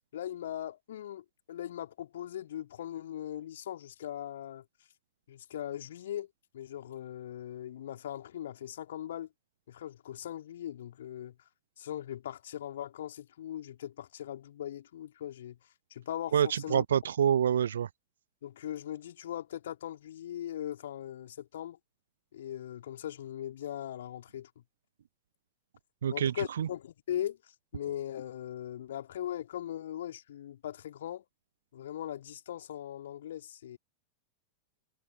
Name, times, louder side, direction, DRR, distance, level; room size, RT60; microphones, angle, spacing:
voice 1, 0.1-4.6 5.3-6.3 6.5-9.3 9.7-11.3 11.8-15.6 15.9-16.3 16.6-16.8 18.4-21.8 22.3-24.5 26.1-27.4 27.7-31.3 31.7-33.8, left 11 dB, 60° left, 3.7 m, -39 dB
voice 2, 16.3-17.9 26.0-26.7, right 9 dB, 65° right, 0.7 m, -27 dB
figure-of-eight pair, 90°, 0 cm